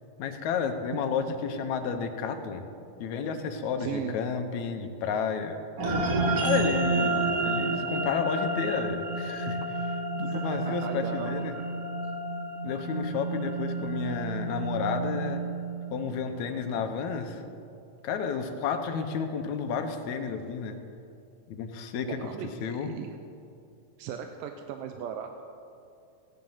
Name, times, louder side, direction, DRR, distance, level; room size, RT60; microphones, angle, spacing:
voice 1, 0.2-2.7 3.0-5.6 6.4-11.5 12.6-15.4 15.9-17.4 18.0-20.8 21.5-22.3 22.6-22.9, left 6 dB, 70° left, 6 dB, 2.0 m, -31 dB
voice 2, 3.8-4.2 10.2-11.5 14.0-14.2 22.1-23.2 24.0-25.4, right 8 dB, 90° right, 5 dB, 2.3 m, -38 dB
sound 1, 5.8-16.4, right 2 dB, 55° right, 1.8 m, -30 dB
16.0 x 10.5 x 5.6 m, 2.5 s
omnidirectional pair, 3.9 m